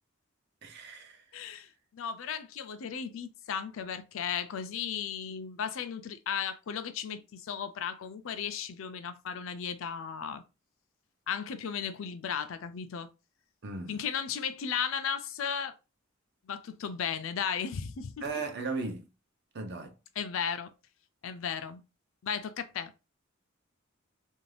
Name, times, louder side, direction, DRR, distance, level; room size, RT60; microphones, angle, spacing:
voice 1, 0.6-1.2 13.6-14.0 18.2-19.1 19.5-19.9, right 3 dB, 55° right, 0.6 m, -36 dB
voice 2, 1.3-1.7 1.9-10.4 11.3-13.1 13.9-15.7 16.5-18.2 20.2-20.7 21.2-21.8 22.2-22.9, left 7 dB, 75° left, 0.4 m, -35 dB
2.5 x 2.3 x 3.2 m
head